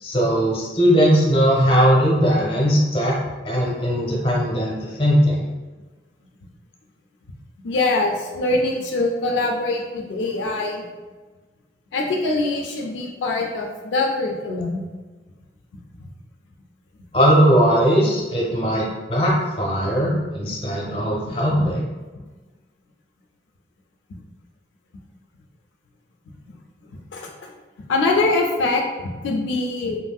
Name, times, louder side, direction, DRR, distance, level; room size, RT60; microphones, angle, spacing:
voice 1, 0.0-3.2 3.4-5.4 17.1-21.8, equal, 30° left, -4 dB, 0.7 m, -19 dB
voice 2, 7.6-10.9 11.9-14.8 21.6-21.7 22.2-22.3 24.1-24.2 27.1-27.3 27.9-30.0, left 2 dB, 80° left, 0 dB, 0.4 m, -23 dB
3.0 x 2.6 x 2.2 m, 1.3 s
head